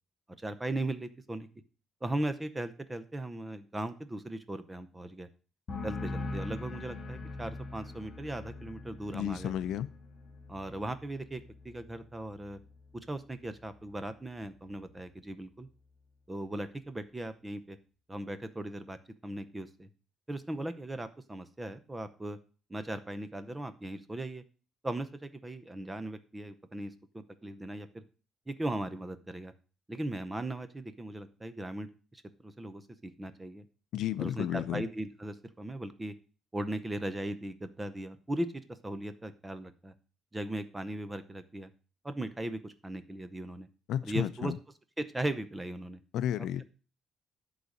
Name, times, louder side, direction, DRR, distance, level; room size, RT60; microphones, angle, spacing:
voice 1, 0.4-1.5 2.0-5.3 5.8-9.5 10.5-12.6 13.1-15.7 16.3-17.8 18.1-19.0 19.2-19.9 20.3-22.4 22.7-24.4 24.8-28.0 28.5-29.5 29.9-33.6 34.2-36.1 36.5-38.5 38.8-39.9 40.3-41.7 42.0-43.7 44.0-44.5 45.0-46.0 46.4-46.5, right 1 dB, 15° right, 12 dB, 0.8 m, -38 dB
sound 1, 5.7-13.1 13.4-14.0, left 3 dB, 35° left, 2.1 m, -43 dB
voice 2, 9.1-9.9 33.9-34.9 43.9-44.6 46.1-46.6, left 10 dB, 75° left, 15 dB, 0.5 m, -32 dB
11.0 x 4.0 x 6.5 m, 0.37 s
cardioid pair, 145°, 0 cm